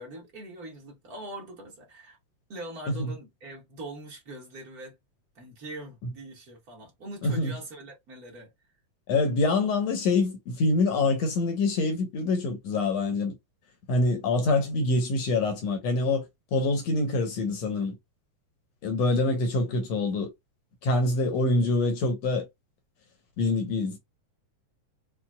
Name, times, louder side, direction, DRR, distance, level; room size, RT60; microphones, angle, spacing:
voice 1, 0.0-2.2 2.5-5.0 5.3-8.5, right 1 dB, 45° right, 1.2 m, -42 dB
voice 2, 9.1-13.4 13.9-16.3 16.5-18.0 18.8-20.3 20.8-22.5 23.4-24.0, left 2 dB, 65° left, 1.9 m, -25 dB
5.7 x 2.3 x 2.3 m
omnidirectional pair, 3.7 m